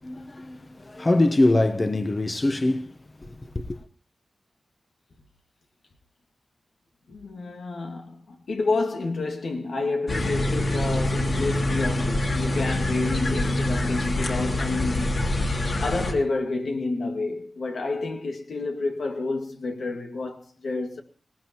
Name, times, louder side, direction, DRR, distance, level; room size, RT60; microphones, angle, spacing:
voice 1, 0.0-3.8, left 2 dB, 30° left, 1.0 m, -24 dB
voice 2, 7.1-15.1 15.8-21.0, left 3 dB, 90° left, 2.2 m, -29 dB
sound 1, 10.1-16.1, left 1 dB, 60° left, 2.6 m, -25 dB
19.0 x 18.5 x 3.0 m
wide cardioid pair, 100°, 0 cm